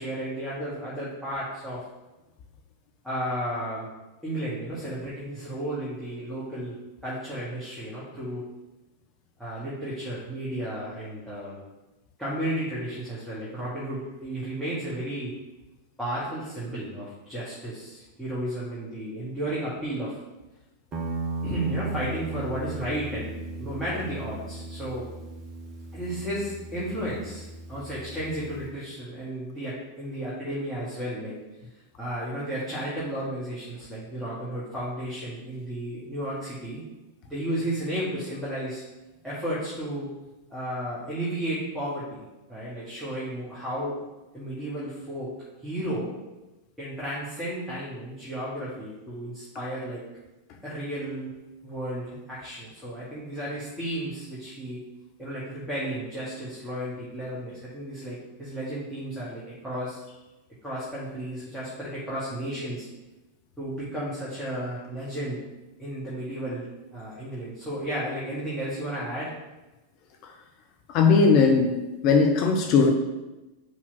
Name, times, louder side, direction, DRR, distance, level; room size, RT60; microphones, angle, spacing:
voice 1, 0.0-1.8 3.0-3.9 4.2-6.8 7.0-8.4 9.4-11.6 12.2-15.3 16.0-20.2 21.4-25.1 25.9-31.3 32.0-36.8 37.3-38.8 39.2-40.1 40.5-42.2 42.5-44.0 44.3-45.3 45.6-46.1 46.8-50.0 50.6-51.3 51.6-54.8 55.2-60.0 60.6-62.9 63.6-65.4 65.8-69.4, right 1 dB, ahead, -9 dB, 2.2 m, -33 dB
Guitar, 20.9-28.7, right 2 dB, 30° right, 1.2 m, -36 dB
voice 2, 70.9-72.9, left 5 dB, 40° left, 3 dB, 0.8 m, -19 dB
5.6 x 4.8 x 6.1 m, 1.1 s
figure-of-eight pair, 90°, 0 cm